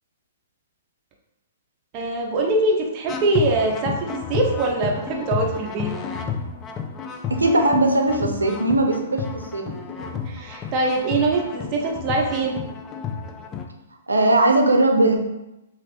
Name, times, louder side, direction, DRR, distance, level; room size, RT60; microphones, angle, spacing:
voice 1, 1.9-5.9 9.7-10.0 10.3-12.6, right 2 dB, 35° right, 0 dB, 0.5 m, -23 dB
sound 1, 3.1-13.6, left 6 dB, 25° left, 0.3 m, -31 dB
voice 2, 7.3-9.6 14.1-15.2, right 2 dB, 90° right, 2 dB, 0.5 m, -19 dB
3.0 x 2.5 x 2.9 m, 0.95 s
hypercardioid pair, 125°, 0 cm